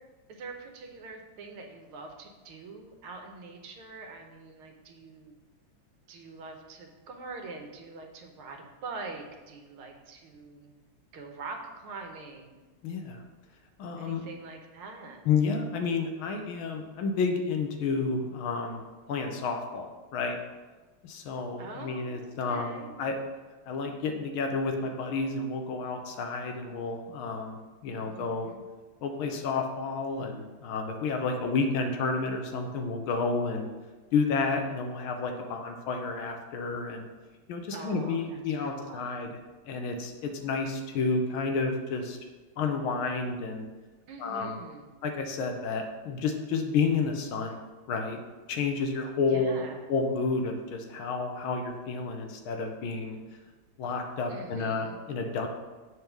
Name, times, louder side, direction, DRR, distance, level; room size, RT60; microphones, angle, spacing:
voice 1, 0.3-5.3 6.1-10.7 11.1-12.6 14.0-15.2 21.6-23.0 27.9-28.6 37.7-39.4 44.1-44.9 49.3-49.9 54.3-55.0, right 3 dB, 75° right, 3 dB, 1.7 m, -44 dB
voice 2, 12.8-13.2 13.8-14.2 15.3-18.8 19.1-20.4 21.0-23.2 23.7-28.5 29.0-33.7 34.1-37.1 37.5-39.3 39.7-42.2 42.6-43.7 44.2-44.6 45.0-47.6 47.9-48.2 48.5-49.6 49.9-53.2 53.8-55.5, left 4 dB, 75° left, 4 dB, 1.5 m, -30 dB
7.7 x 3.5 x 5.9 m, 1.3 s
omnidirectional pair, 2.4 m